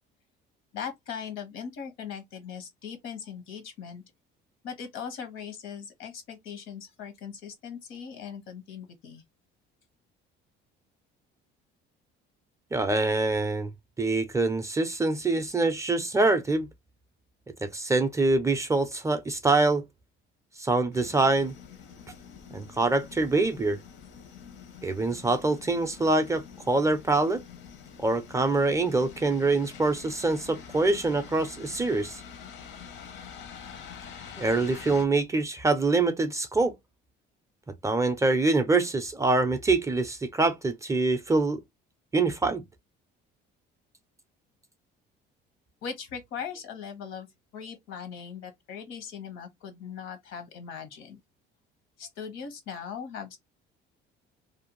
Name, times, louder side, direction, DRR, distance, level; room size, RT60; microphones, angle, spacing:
voice 1, 0.7-4.0 4.6-9.2 45.8-47.3 47.5-51.2 52.0-53.4, left 7 dB, 80° left, 1.1 m, -39 dB
voice 2, 12.7-13.7 14.0-16.7 17.6-19.8 20.6-21.5 22.5-23.8 24.8-27.4 28.0-32.2 34.4-36.7 37.8-41.6 42.1-42.6, right 3 dB, 15° right, 0.3 m, -25 dB
sound 1, 20.9-35.1, left 7 dB, 60° left, 0.7 m, -46 dB
2.5 x 2.2 x 2.9 m
cardioid pair, 120°, 21 cm